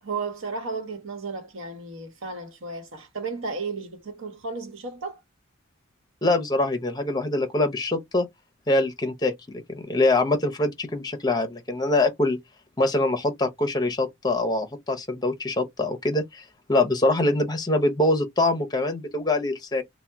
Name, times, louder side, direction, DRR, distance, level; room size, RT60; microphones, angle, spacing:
voice 1, 0.0-5.2, right 4 dB, 80° right, 1.1 m, -34 dB
voice 2, 6.2-8.3 8.7-9.3 9.7-12.4 12.8-16.4 16.7-19.8, left 2 dB, 20° left, 0.6 m, -24 dB
2.8 x 2.1 x 3.4 m
head